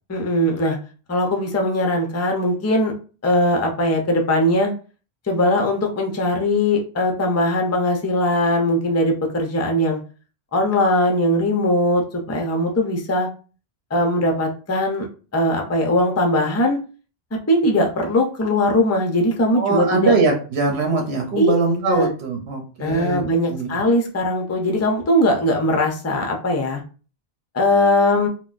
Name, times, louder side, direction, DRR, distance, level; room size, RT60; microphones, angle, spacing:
voice 1, 0.1-0.8 1.1-2.9 3.2-4.7 5.3-10.0 10.5-13.3 13.9-15.1 15.3-16.8 17.5-20.1 21.4-21.5 21.9-22.1 22.8-26.8 27.5-28.3, left 1 dB, 20° left, 2 dB, 0.4 m, -20 dB
voice 2, 19.5-23.2 23.5-23.7, right 3 dB, 80° right, 2 dB, 1.0 m, -21 dB
3.8 x 2.1 x 2.4 m, 0.36 s
omnidirectional pair, 1.1 m